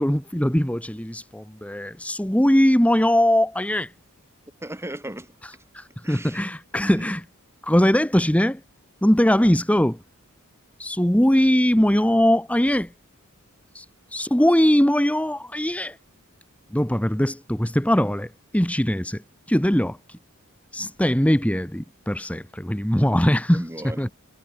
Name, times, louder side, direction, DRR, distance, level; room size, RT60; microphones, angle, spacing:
voice 1, 0.0-3.9 5.7-7.2 7.6-8.6 9.0-10.0 10.8-12.9 13.7-16.0 16.7-19.2 19.5-20.2 20.7-23.7 24.0-24.1, equal, 5° left, 1.4 m, -21 dB
voice 2, 4.6-5.5 6.0-6.5 6.8-7.1 23.5-24.1, right 1 dB, 10° right, 7.9 m, -36 dB
head